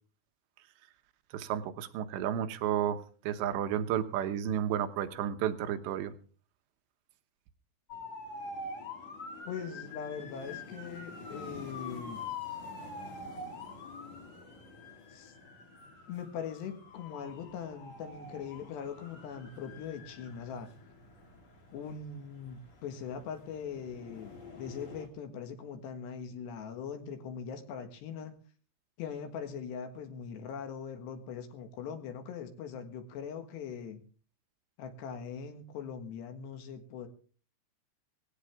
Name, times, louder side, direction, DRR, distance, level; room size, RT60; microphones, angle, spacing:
voice 1, 1.3-3.0 3.2-6.1, right 10 dB, 85° right, 9 dB, 3.3 m, -32 dB
sound 1, 7.9-25.1, left 3 dB, 45° left, 3.2 m, -46 dB
voice 2, 9.5-12.2 15.1-15.3 16.1-20.7 21.7-28.4 29.0-34.0 34.8-37.1, left 7 dB, 75° left, 7 dB, 3.7 m, -41 dB
18.0 x 16.5 x 3.6 m, 0.40 s
omnidirectional pair, 5.0 m